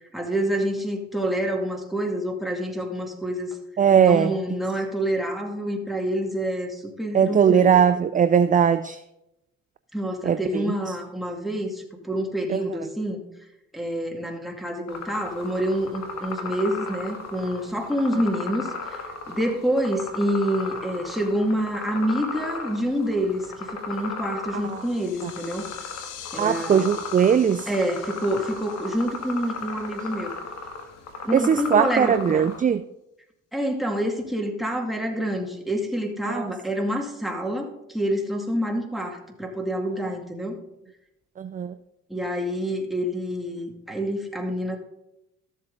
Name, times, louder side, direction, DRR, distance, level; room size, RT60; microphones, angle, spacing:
voice 1, 0.1-3.6 4.0-7.8 9.9-13.3 13.7-19.0 19.3-25.7 26.3-26.9 27.7-30.3 31.2-32.5 33.5-40.6 42.1-44.8, equal, ahead, 0 dB, 2.1 m, -27 dB
voice 2, 3.8-4.3 7.1-9.0 10.2-11.0 12.5-12.8 24.7-24.8 25.2-25.3 26.4-27.7 31.3-32.8 36.3-36.5 41.4-41.7, right 8 dB, 25° right, 13 dB, 0.4 m, -20 dB
sound 1, 14.9-32.6, left 4 dB, 60° left, 1.8 m, -36 dB
sound 2, 24.5-30.6, left 9 dB, 85° left, 1.1 m, -45 dB
13.0 x 7.4 x 3.9 m, 0.88 s
cardioid pair, 90°, 30 cm